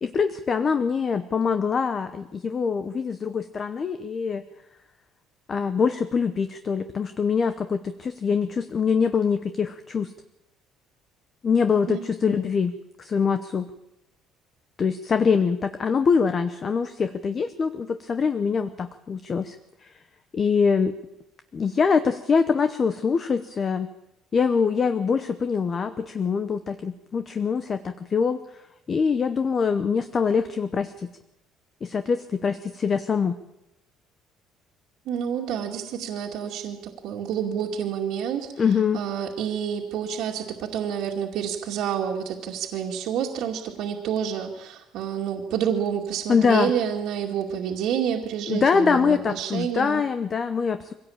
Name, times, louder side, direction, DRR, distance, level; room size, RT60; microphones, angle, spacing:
voice 1, 0.0-4.4 5.5-10.1 11.4-13.7 14.8-19.6 19.8-19.9 20.3-21.0 21.5-23.9 24.3-28.4 28.9-31.1 31.8-33.4 38.6-39.0 46.3-46.7 48.5-50.9, left 5 dB, 25° left, 10 dB, 0.9 m, -24 dB
voice 2, 11.9-12.4 35.1-38.5 38.9-50.0, right 8 dB, 65° right, -1 dB, 2.3 m, -29 dB
23.5 x 17.0 x 8.7 m, 0.93 s
cardioid pair, 160°, 0 cm